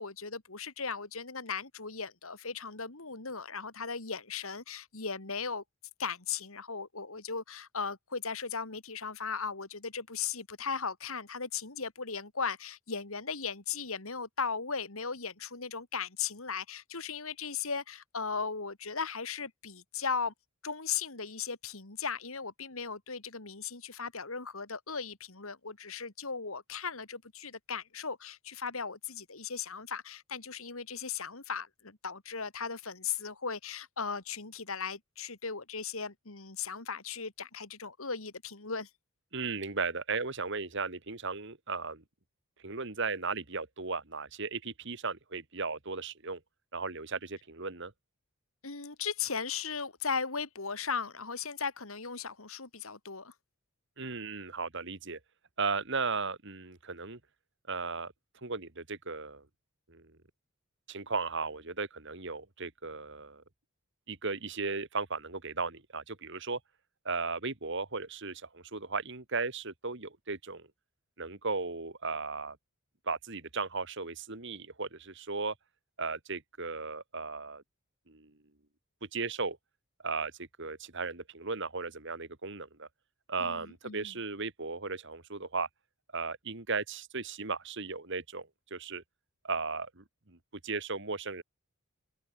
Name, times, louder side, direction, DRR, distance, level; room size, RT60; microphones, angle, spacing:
voice 1, 0.0-5.6 6.0-20.3 20.6-38.9 48.6-53.3 83.4-84.1, left 5 dB, 70° left, 2.7 m, -37 dB
voice 2, 39.3-42.0 42.6-46.4 46.7-47.9 54.0-55.2 55.6-57.2 57.7-58.1 58.4-59.4 59.9-60.2 60.9-63.4 64.1-66.6 67.0-70.7 71.2-72.6 73.1-75.5 76.0-77.6 78.1-78.3 79.0-79.6 80.0-82.9 83.3-85.7 86.1-89.0 89.4-90.4 90.6-91.4, right 4 dB, 55° right, 2.1 m, -36 dB
open air
head